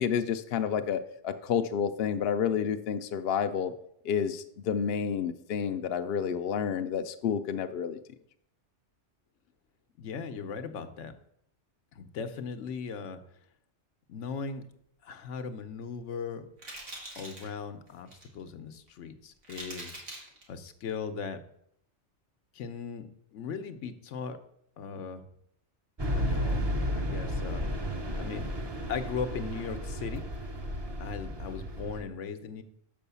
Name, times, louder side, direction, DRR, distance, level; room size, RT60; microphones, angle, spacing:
voice 1, 0.0-3.7 4.0-8.0, left 7 dB, 65° left, 8 dB, 0.7 m, -30 dB
voice 2, 10.0-11.1 11.9-13.2 14.1-14.6 15.0-16.5 17.1-20.0 20.5-21.4 22.5-24.4 24.8-25.2 26.1-27.9 28.1-28.5 28.9-30.3 31.0-32.6, left 5 dB, 80° left, 8 dB, 1.1 m, -38 dB
sound 1, 15.9-16.0 16.6-17.5 17.9-18.3 18.9-19.0 19.4-20.4, right 1 dB, 85° right, 2.2 m, -43 dB
sound 2, 26.0-32.0, equal, 25° right, 0.6 m, -33 dB
6.4 x 5.4 x 6.8 m, 0.73 s
omnidirectional pair, 1.2 m